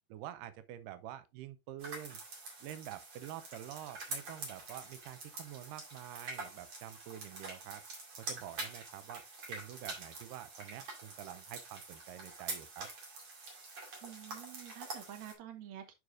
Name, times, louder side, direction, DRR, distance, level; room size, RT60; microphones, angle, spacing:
voice 1, 0.1-2.2 2.6-7.8 8.2-9.2 9.5-12.9, right 12 dB, 90° right, 2.3 m, -47 dB
sound 1, 1.8-15.3, right 3 dB, 45° right, 3.0 m, -46 dB
voice 2, 14.0-15.9, right 11 dB, 65° right, 2.4 m, -48 dB
11.0 x 4.9 x 2.5 m
omnidirectional pair, 3.7 m